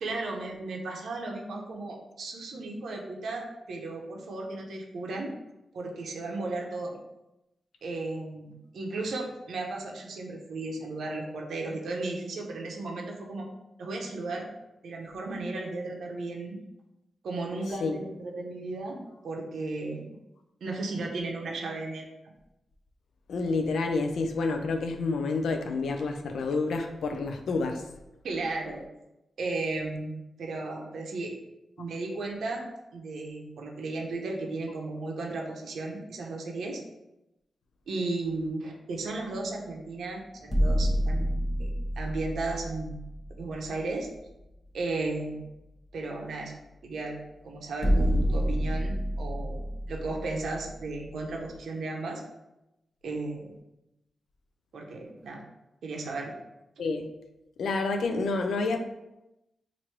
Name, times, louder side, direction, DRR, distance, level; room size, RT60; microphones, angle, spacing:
voice 1, 0.0-5.3 5.7-7.0 7.8-13.5 13.8-14.5 14.8-16.6 17.2-19.0 19.2-20.1 20.6-22.0 28.2-28.8 29.4-31.3 31.8-32.7 32.9-36.8 37.9-41.3 41.6-41.7 42.0-42.9 43.4-44.1 44.7-45.4 45.9-46.6 46.8-47.2 47.4-49.6 49.9-52.2 53.0-53.6 54.7-55.4 55.8-56.3, right 2 dB, 80° right, 0 dB, 0.7 m, -35 dB
voice 2, 23.3-27.8 56.8-57.1 57.6-58.8, left 3 dB, 85° left, 5 dB, 0.4 m, -29 dB
sound 1, 40.4-44.0 44.4-44.5 47.8-51.4, equal, 25° left, 0.9 m, -28 dB
3.0 x 2.6 x 4.4 m, 0.91 s
wide cardioid pair, 110°, 0 cm